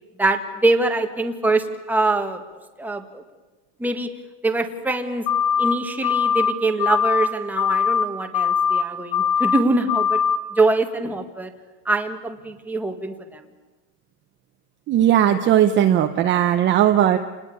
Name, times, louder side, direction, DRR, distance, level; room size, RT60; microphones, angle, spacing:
voice 1, 0.2-2.4 2.8-3.2 3.8-4.1 4.4-5.3 5.6-10.2 10.5-11.5 11.8-13.5, right 2 dB, 5° right, 4 dB, 1.7 m, -23 dB
sound 1, 5.3-5.7 6.0-6.5 6.8-7.3 7.6-8.0 8.3-8.8 9.1-9.6 9.9-10.4, left 7 dB, 65° left, 2.8 m, -20 dB
voice 2, 14.9-17.2, right 11 dB, 25° right, 5 dB, 0.9 m, -17 dB
29.5 x 20.0 x 8.6 m, 1.2 s
supercardioid pair, 165°, 47 cm